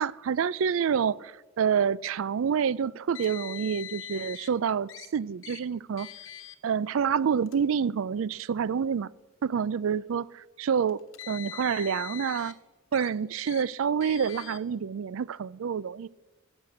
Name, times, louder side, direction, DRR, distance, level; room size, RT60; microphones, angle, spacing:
voice 1, 0.0-6.1 6.6-9.1 9.4-11.0 11.3-12.5 12.9-16.1, right 7 dB, 75° right, 0.4 m, -28 dB
Car, 3.1-4.5 4.9-5.1 5.4-5.6 6.0-6.6 7.4-7.6 8.5-8.6 10.9-12.5 12.9-13.1 13.5-13.6 14.0-14.6, left 10 dB, 70° left, 1.1 m, -42 dB
14.5 x 6.6 x 8.5 m
head